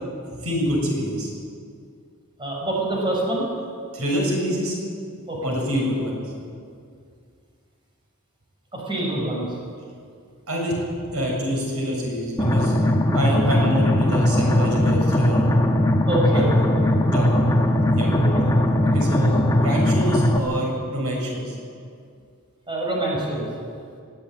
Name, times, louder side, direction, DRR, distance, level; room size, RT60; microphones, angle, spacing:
voice 1, 0.3-1.3 3.9-4.8 5.4-6.2 10.5-10.8 11.1-12.7 13.1-15.5 15.8-15.9 16.3-16.4 17.0-17.4 17.9-18.1 18.8-21.6, equal, 75° right, -2 dB, 7.1 m, -26 dB
voice 2, 2.4-3.5 5.3-5.4 8.7-9.5 16.0-16.9 18.1-18.4 22.7-23.5, right 1 dB, 20° right, -3 dB, 6.1 m, -26 dB
sound 1, 12.4-20.4, left 1 dB, 15° left, 1.7 m, -19 dB
20.5 x 16.0 x 9.3 m, 2.3 s
head